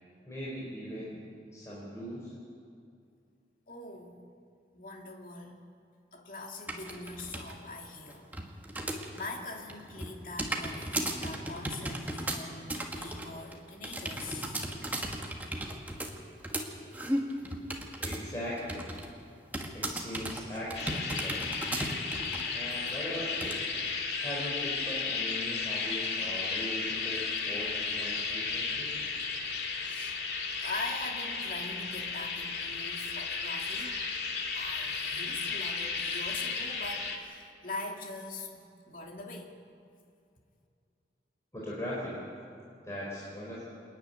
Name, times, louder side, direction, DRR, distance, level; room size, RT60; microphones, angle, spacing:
voice 1, 0.3-1.2 1.5-2.3 18.0-18.8 19.7-21.5 22.5-23.6 24.2-28.9 41.5-42.2 42.8-43.6, equal, 15° left, -6 dB, 4.4 m, -39 dB
voice 2, 3.7-4.2 4.7-5.5 6.1-8.3 9.0-14.5 29.8-30.2 30.6-34.0 34.5-39.5, left 2 dB, 50° left, 1 dB, 2.5 m, -42 dB
sound 1, 6.7-7.5 7.9-9.3 9.6-18.3 18.6-19.1 19.5-22.5 22.9-23.0 23.4-23.6, right 1 dB, 10° right, 1.7 m, -36 dB
sound 2, 20.7-37.2, left 5 dB, 70° left, 2.1 m, -34 dB
28.0 x 10.5 x 9.4 m, 2.4 s
head